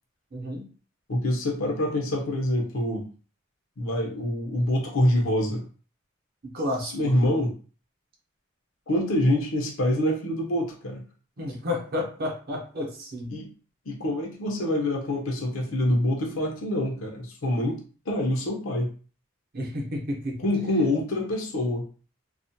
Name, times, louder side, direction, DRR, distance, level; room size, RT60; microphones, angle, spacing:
voice 1, 0.3-0.7 6.4-7.1 11.4-13.3 19.5-20.4, left 1 dB, 45° right, 1 dB, 0.7 m, -31 dB
voice 2, 1.1-3.1 3.8-5.6 6.9-7.5 8.9-11.0 13.3-13.5 13.9-17.8 18.1-18.9 20.4-21.9, left 1 dB, 75° left, 0 dB, 0.6 m, -25 dB
2.4 x 2.1 x 2.7 m, 0.39 s
head